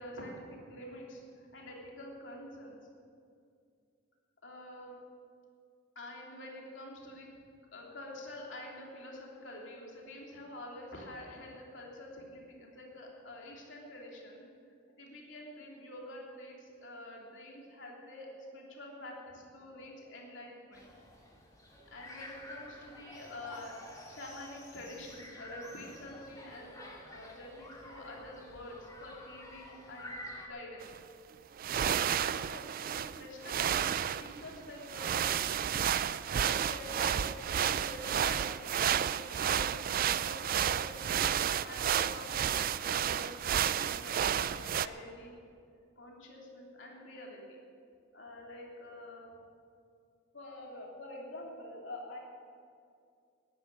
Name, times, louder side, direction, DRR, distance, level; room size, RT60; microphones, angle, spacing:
voice 1, 0.0-2.7 4.4-4.9 5.9-7.3 7.7-14.4 15.0-21.3 21.9-30.2 30.5-30.9 31.7-35.2 35.6-35.8 36.3-39.9 40.2-45.3 46.0-47.4 48.1-49.3 50.3-52.2, left 1 dB, 65° left, -2 dB, 3.0 m, -47 dB
sound 1, 20.7-30.5, left 1 dB, 20° left, 2.5 m, -50 dB
sound 2, 30.8-30.9 31.6-44.9, right 9 dB, 45° right, 0.4 m, -31 dB
12.0 x 10.5 x 9.2 m, 2.3 s
head